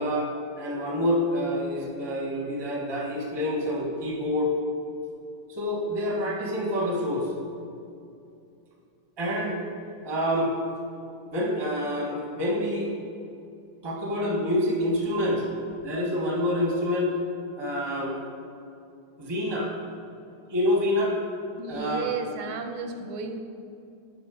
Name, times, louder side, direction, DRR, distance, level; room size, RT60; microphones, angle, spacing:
voice 1, 0.0-4.5 5.5-7.3 9.2-9.6 10.0-10.5 11.3-12.9 13.8-15.4 15.8-17.2 17.6-18.2 19.2-19.7 20.5-21.2 21.7-22.1, left 1 dB, 20° right, -2 dB, 0.7 m, -27 dB
voice 2, 21.6-23.4, right 5 dB, 90° right, 5 dB, 1.5 m, -33 dB
7.2 x 4.0 x 4.9 m, 2.5 s
omnidirectional pair, 2.2 m